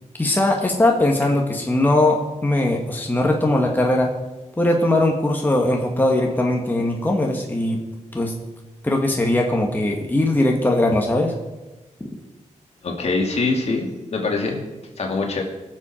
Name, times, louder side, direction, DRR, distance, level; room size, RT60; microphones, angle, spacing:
voice 1, 0.2-4.1 4.6-7.8 8.1-8.3 8.8-11.3, left 1 dB, 15° left, 0 dB, 1.6 m, -20 dB
voice 2, 12.8-14.6 15.0-15.4, left 3 dB, 55° left, 1 dB, 2.6 m, -23 dB
22.0 x 7.4 x 4.4 m, 1.1 s
cardioid pair, 95°, 13 cm